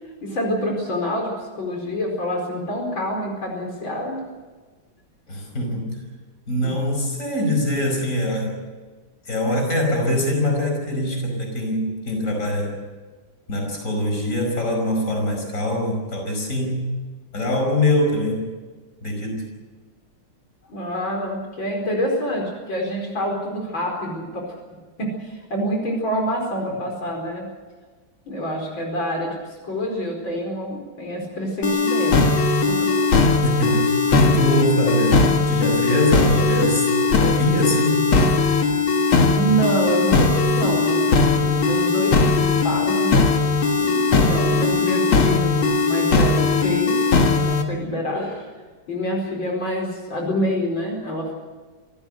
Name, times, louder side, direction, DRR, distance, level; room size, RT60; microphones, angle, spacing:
voice 1, 0.2-4.2 6.6-6.7 20.7-24.6 25.0-27.5 28.3-29.3 29.6-32.2 32.7-33.0 39.3-43.2 43.8-48.5 48.9-51.3, equal, 70° left, 0 dB, 5.5 m, -27 dB
voice 2, 5.3-6.0 6.5-8.6 9.3-12.8 13.5-16.8 17.3-18.5 19.0-19.5 33.4-38.3, left 1 dB, 40° left, 2 dB, 5.6 m, -23 dB
sound 1, 31.6-47.6, left 4 dB, 90° left, 2.7 m, -19 dB
27.0 x 15.5 x 8.0 m, 1.4 s
omnidirectional pair, 2.2 m